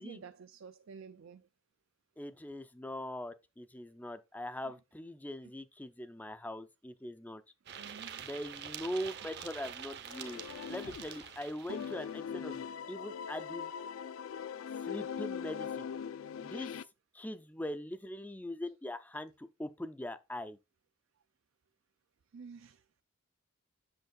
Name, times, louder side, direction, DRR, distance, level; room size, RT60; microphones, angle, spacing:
voice 1, 0.0-1.5 4.6-4.7 5.4-5.5 7.8-8.3 22.3-22.8, right 5 dB, 70° right, 0.4 m, -50 dB
voice 2, 2.2-7.4 8.2-13.7 14.8-15.9 16.4-16.7 17.1-20.6, left 1 dB, 10° left, 0.4 m, -42 dB
sound 1, 7.7-12.2, right 8 dB, 50° right, 0.9 m, -46 dB
sound 2, 10.1-11.4 11.7-16.8, left 7 dB, 75° left, 0.4 m, -41 dB
7.9 x 6.5 x 2.3 m
head